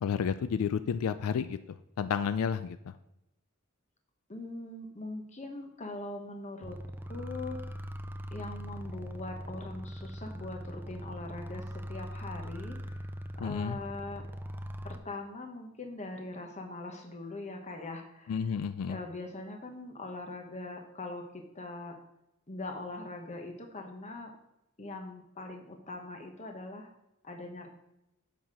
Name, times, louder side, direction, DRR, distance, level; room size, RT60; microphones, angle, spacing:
voice 1, 0.0-1.6 2.0-2.9 13.4-13.8 18.3-19.0, left 7 dB, 80° left, 12 dB, 0.3 m, -31 dB
voice 2, 4.3-7.6 8.3-12.8 13.4-14.2 14.8-18.5 18.9-22.0 22.5-24.3 24.8-26.9 27.2-27.7, left 2 dB, 30° left, 3 dB, 1.1 m, -42 dB
sound 1, 6.6-15.0, equal, 10° right, 0.3 m, -41 dB
7.1 x 5.9 x 4.8 m, 0.88 s
head